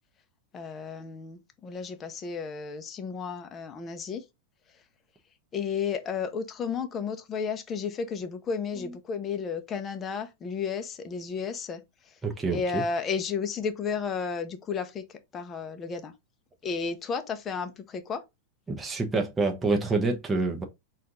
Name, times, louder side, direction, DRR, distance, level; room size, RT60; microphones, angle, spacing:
voice 1, 0.5-4.2 5.5-11.8 12.5-15.0 15.3-16.1 16.6-18.2, left 6 dB, 25° left, 0.8 m, -33 dB
voice 2, 12.2-12.8 18.7-20.6, right 3 dB, 10° right, 0.9 m, -27 dB
4.4 x 2.6 x 3.8 m
supercardioid pair, 140°, 0 cm